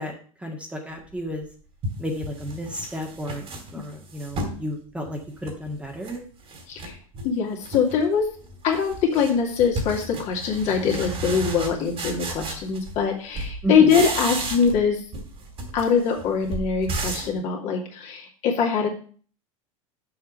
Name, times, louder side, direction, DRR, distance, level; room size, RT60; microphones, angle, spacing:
voice 1, 0.0-1.5 2.0-3.5 3.7-6.2 13.6-13.9, equal, 5° right, 1 dB, 1.8 m, -32 dB
sound 1, 1.2-1.3 1.8-4.6 5.1-6.2 6.5-7.3 7.6-8.1 8.4-13.1 13.3-14.9 15.1-17.4, right 2 dB, 35° right, 2.5 m, -33 dB
voice 2, 7.2-8.3 8.6-15.0 15.7-18.9, left 6 dB, 40° left, 0 dB, 2.5 m, -23 dB
7.1 x 5.7 x 6.8 m, 0.44 s
figure-of-eight pair, 85°, 17 cm